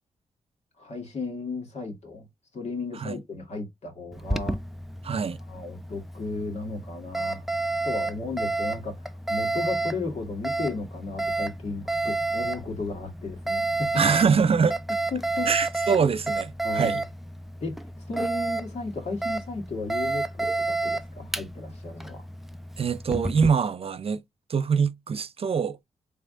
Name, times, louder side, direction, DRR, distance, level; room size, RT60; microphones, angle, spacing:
voice 1, 0.8-2.3 2.5-4.6 5.5-7.5 7.8-9.0 9.3-13.9 15.1-15.5 16.6-17.0 17.6-17.7 18.1-22.3, left 3 dB, 60° left, 2.0 m, -34 dB
Alarm, 4.1-23.5, right 2 dB, ahead, 0.5 m, -31 dB
voice 2, 5.0-5.4 14.0-14.8 15.5-17.0 22.8-24.2 24.5-25.8, right 6 dB, 50° right, 0.5 m, -24 dB
3.5 x 3.2 x 3.7 m
cardioid pair, 50°, 12 cm